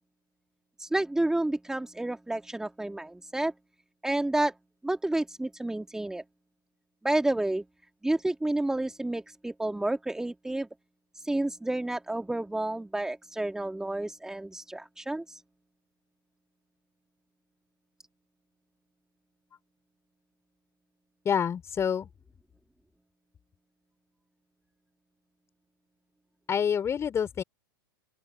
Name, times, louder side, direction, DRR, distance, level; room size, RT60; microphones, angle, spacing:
voice 1, 0.8-3.5 4.0-4.5 4.8-6.2 7.0-7.6 8.0-10.7 11.1-15.4, right 1 dB, 5° right, 2.3 m, -30 dB
voice 2, 21.2-22.1 26.5-27.4, left 8 dB, 25° left, 5.3 m, -27 dB
open air
figure-of-eight pair, 100°, 12 cm